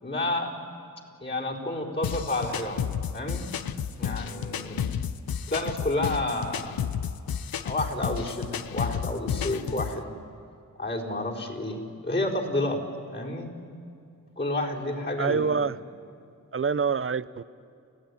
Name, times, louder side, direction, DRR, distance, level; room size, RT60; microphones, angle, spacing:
voice 1, 0.0-0.5 1.2-3.5 4.0-5.0 5.5-6.8 7.6-10.2 10.8-12.8 13.1-13.5 14.4-15.5, left 2 dB, 30° left, -3 dB, 4.7 m, -30 dB
sound 1, 2.0-10.0, left 8 dB, 90° left, 0.8 m, -32 dB
voice 2, 15.2-15.8 16.5-17.4, right 5 dB, 40° right, 16 dB, 0.7 m, -26 dB
30.0 x 15.5 x 10.0 m, 2.4 s
cardioid pair, 55°, 34 cm